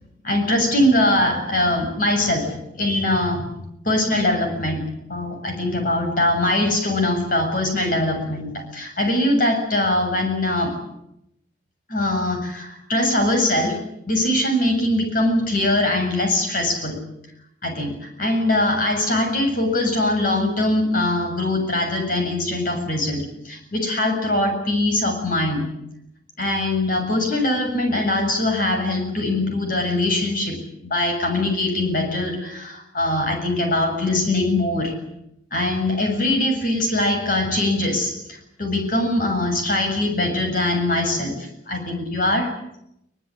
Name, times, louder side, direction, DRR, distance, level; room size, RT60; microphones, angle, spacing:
voice 1, 0.2-3.6 3.8-4.8 5.1-10.8 11.9-13.8 14.1-17.0 17.6-25.7 26.4-34.9 35.5-42.5, left 1 dB, 50° left, 4 dB, 7.4 m, -22 dB
22.5 x 21.0 x 9.8 m, 0.81 s
head